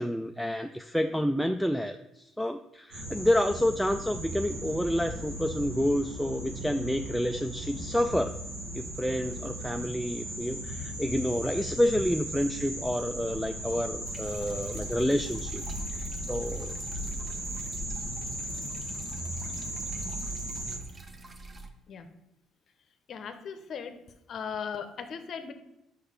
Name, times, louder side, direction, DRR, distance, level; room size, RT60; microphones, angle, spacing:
voice 1, 0.0-8.4 8.7-15.6 15.9-16.8, equal, ahead, 6 dB, 0.3 m, -29 dB
sound 1, 2.9-20.8, right 1 dB, 90° right, 2.5 m, -37 dB
sound 2, 14.1-21.7, right 2 dB, 25° right, 0.8 m, -49 dB
voice 2, 23.1-24.0 24.3-25.5, left 6 dB, 55° left, 8 dB, 0.7 m, -37 dB
5.4 x 4.7 x 5.1 m, 0.89 s
supercardioid pair, 85°, 0 cm